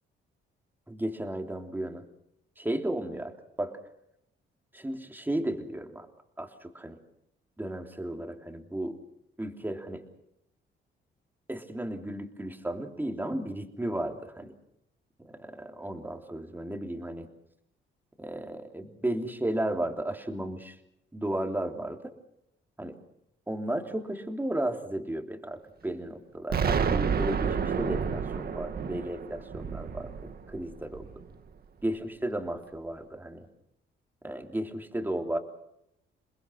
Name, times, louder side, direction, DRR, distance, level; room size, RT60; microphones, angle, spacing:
voice 1, 0.9-2.0 2.6-3.8 4.7-6.1 6.4-7.0 7.6-9.0 9.4-10.0 11.5-14.5 15.2-17.3 18.2-20.7 21.1-22.0 22.8-23.0 23.5-31.2 31.8-33.5 34.2-35.4, right 1 dB, 10° right, 4 dB, 3.3 m, -34 dB
Explosion, 26.5-31.4, right 6 dB, 50° right, 1.8 m, -30 dB
28.5 x 21.0 x 6.5 m, 0.80 s
cardioid pair, 90°, 20 cm